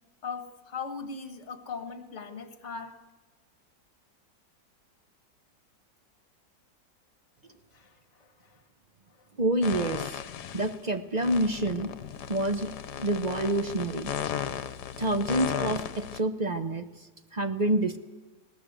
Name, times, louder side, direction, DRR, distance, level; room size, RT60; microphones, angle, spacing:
voice 1, 0.2-3.0 7.4-8.6 9.2-9.3, left 5 dB, 40° left, 9 dB, 1.8 m, -40 dB
voice 2, 9.4-10.2 10.5-11.9 12.3-12.7 13.0-14.1 15.0-16.8 17.3-18.0, right 1 dB, 40° right, 9 dB, 0.5 m, -27 dB
sound 1, 9.6-10.8 11.2-16.2, left 9 dB, 70° left, 1.4 m, -35 dB
19.5 x 18.0 x 8.1 m, 1.2 s
omnidirectional pair, 2.0 m